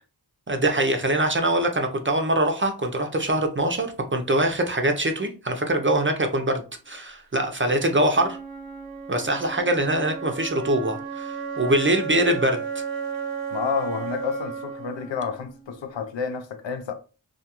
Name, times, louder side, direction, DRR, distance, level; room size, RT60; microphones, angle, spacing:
voice 1, 0.5-8.4 9.1-12.6, right 1 dB, 30° right, 0.5 m, -23 dB
Wind instrument woodwind instrument, 8.1-16.1, right 6 dB, 85° right, 0.6 m, -34 dB
voice 2, 13.5-16.9, left 6 dB, 80° left, 0.5 m, -30 dB
2.3 x 2.3 x 2.8 m
wide cardioid pair, 45°, 45 cm